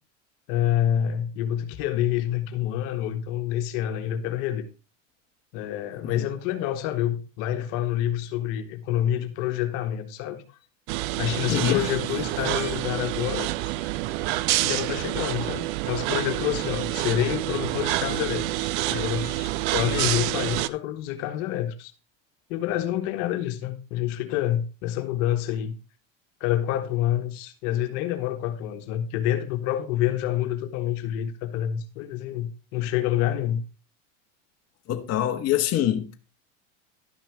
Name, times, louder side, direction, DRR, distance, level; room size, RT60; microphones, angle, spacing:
voice 1, 0.5-4.7 5.5-10.4 11.2-13.5 14.6-19.3 19.7-21.9 22.5-25.7 26.4-33.6, left 11 dB, 60° left, 1.5 m, -27 dB
sound 1, 10.9-20.7, right 16 dB, 60° right, 0.7 m, -28 dB
voice 2, 11.5-11.8 12.5-12.7 19.3-19.5 20.0-20.1 34.9-36.1, left 11 dB, 40° left, 1.3 m, -26 dB
12.0 x 6.0 x 4.5 m
supercardioid pair, 105°, 39 cm